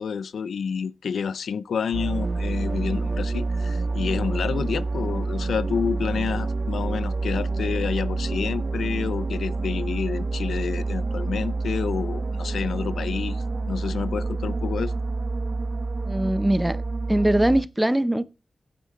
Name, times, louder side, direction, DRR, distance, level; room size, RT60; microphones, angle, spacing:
voice 1, 0.0-14.9, left 6 dB, 90° left, 0.4 m, -29 dB
sound 1, 1.9-17.6, right 3 dB, 55° right, 0.5 m, -28 dB
voice 2, 16.0-16.8 17.1-18.3, right 1 dB, 10° right, 0.7 m, -21 dB
9.3 x 8.8 x 3.2 m
cardioid pair, 60°, 0 cm